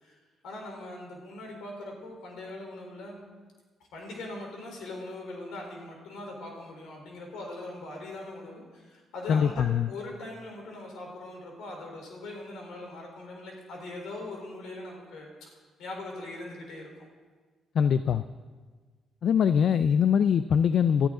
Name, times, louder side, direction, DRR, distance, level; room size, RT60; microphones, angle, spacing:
voice 1, 0.0-3.2 3.9-15.5 15.8-17.1, left 2 dB, 85° left, 0 dB, 3.9 m, -41 dB
voice 2, 9.3-9.9 17.7-18.2 19.2-21.1, left 7 dB, 65° left, 12 dB, 0.4 m, -23 dB
19.0 x 13.0 x 3.8 m, 1.4 s
cardioid pair, 90°, 0 cm